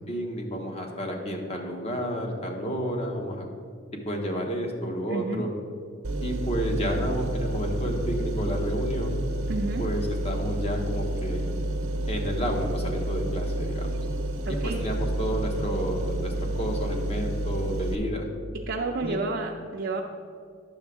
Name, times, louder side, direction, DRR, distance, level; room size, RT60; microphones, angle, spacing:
voice 1, 0.1-3.5 4.0-5.5 6.2-9.2 9.8-11.5 12.1-14.0 14.5-18.3 19.0-19.2, equal, 30° left, 2 dB, 1.0 m, -31 dB
voice 2, 5.1-5.4 9.5-9.8 14.5-14.8 18.7-20.0, right 3 dB, 55° right, -2 dB, 0.5 m, -30 dB
sound 1, 6.0-18.0, right 1 dB, 85° right, 0.8 m, -29 dB
9.9 x 6.8 x 3.6 m, 2.2 s
head